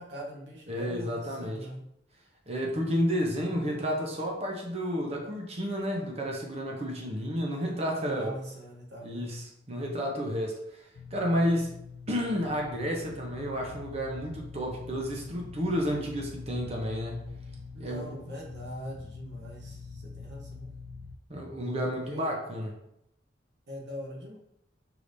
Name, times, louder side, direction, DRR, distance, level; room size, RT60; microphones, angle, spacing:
voice 1, 0.0-1.8 8.0-9.3 17.7-20.7 22.0-22.3 23.7-24.4, equal, 65° right, -2 dB, 1.1 m, -42 dB
voice 2, 0.7-1.7 2.5-8.3 9.0-10.6 11.1-11.7 12.1-17.2 17.8-18.1 21.3-22.7, equal, 35° right, 0 dB, 0.7 m, -31 dB
sound 1, 10.9-21.2, left 5 dB, 55° left, 0.3 m, -45 dB
sound 2, 14.1-22.1, equal, 20° left, 0.8 m, -53 dB
4.8 x 3.4 x 2.6 m, 0.77 s
head